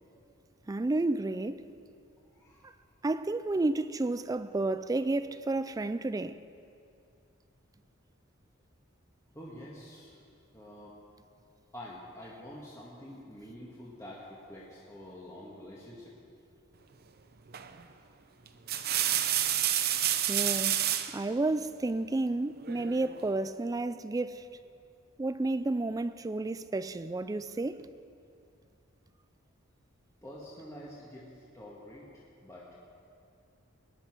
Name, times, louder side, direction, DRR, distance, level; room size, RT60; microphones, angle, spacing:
voice 1, 0.7-1.6 3.0-6.4 20.3-20.8 21.1-24.5 25.2-27.9, right 2 dB, 20° right, 0.3 m, -31 dB
voice 2, 2.3-2.7 9.3-10.2 10.5-11.0 11.7-16.1 30.2-31.2 31.5-32.1 32.4-32.7, left 1 dB, 15° left, 1.9 m, -47 dB
sound 1, 17.5-17.8 18.5-21.2 22.6-23.3, right 11 dB, 50° right, 0.7 m, -29 dB
20.0 x 10.5 x 6.1 m
head